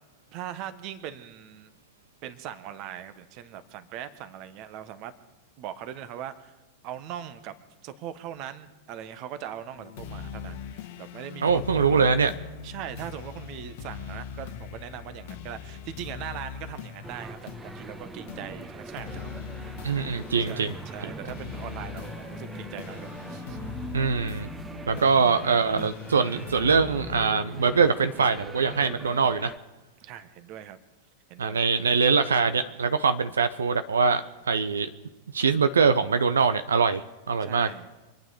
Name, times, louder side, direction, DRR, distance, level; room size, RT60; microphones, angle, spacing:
voice 1, 0.3-1.7 2.2-5.1 5.6-6.5 6.8-7.5 7.8-12.2 12.6-19.3 20.5-23.6 24.9-25.3 30.0-30.8 31.3-31.7 37.4-37.9, right 10 dB, 40° right, 12 dB, 1.3 m, -40 dB
sound 1, 9.8-27.3, left 7 dB, 55° left, 1.3 m, -41 dB
voice 2, 11.4-12.3 19.8-20.7 23.9-24.5 24.9-29.5 31.4-34.9 35.3-37.0 37.3-37.7, right 5 dB, 70° right, 10 dB, 0.6 m, -23 dB
sound 2, 17.0-29.6, right 2 dB, 15° right, 0.9 m, -41 dB
26.0 x 9.2 x 5.0 m, 1.1 s
figure-of-eight pair, 90°, 0 cm